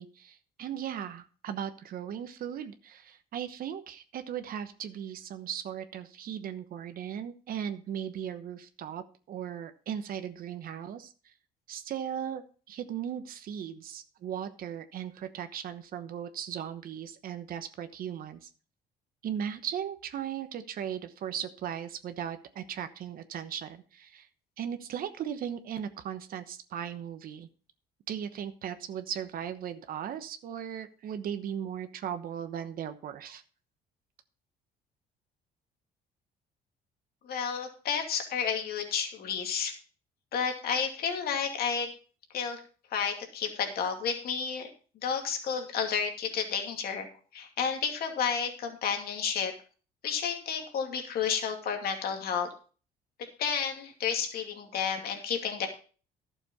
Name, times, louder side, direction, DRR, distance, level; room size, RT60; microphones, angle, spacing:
voice 1, 0.0-11.3 11.7-18.5 19.2-24.3 24.6-27.5 28.1-33.4, right 9 dB, 60° right, 9 dB, 1.1 m, -37 dB
voice 2, 37.2-39.7 40.3-41.9 42.3-42.6 42.9-44.7 45.0-47.1 47.3-49.5 50.0-52.5 53.4-55.7, left 7 dB, 65° left, 4 dB, 2.5 m, -31 dB
11.5 x 7.0 x 5.4 m, 0.39 s
cardioid pair, 110°, 17 cm